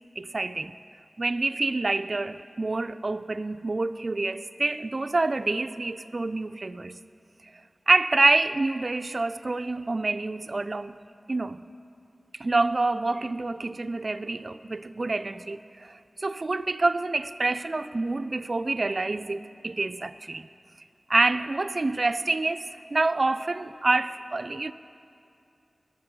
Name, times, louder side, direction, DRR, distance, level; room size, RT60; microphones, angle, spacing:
voice 1, 0.2-0.8 1.2-7.0 7.9-11.0 11.3-11.6 12.3-20.5 21.1-24.7, right 2 dB, 50° right, 0.4 m, -27 dB
20.0 x 7.2 x 6.1 m
wide cardioid pair, 75°, 0 cm